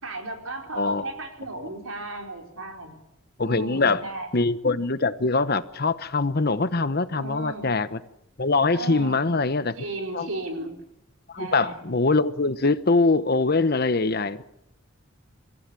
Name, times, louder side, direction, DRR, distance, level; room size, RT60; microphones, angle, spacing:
voice 1, 0.0-3.0 3.4-4.3 7.1-7.8 8.7-9.4 9.8-10.7 11.4-11.8, right 2 dB, 90° right, 3 dB, 4.7 m, -35 dB
voice 2, 3.4-4.0 4.3-8.0 8.4-9.7 10.1-10.3 11.3-14.4, left 3 dB, 50° left, 13 dB, 1.0 m, -23 dB
27.0 x 15.5 x 8.4 m, 0.85 s
head